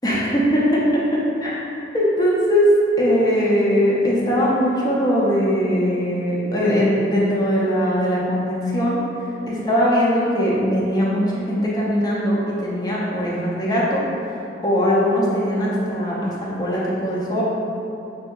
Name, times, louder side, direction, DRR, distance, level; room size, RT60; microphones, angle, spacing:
voice 1, 0.0-1.5 1.9-9.0 9.5-14.4 14.6-16.3 16.6-17.4, equal, 20° left, -6 dB, 0.4 m, -20 dB
3.6 x 2.7 x 2.3 m, 2.8 s
head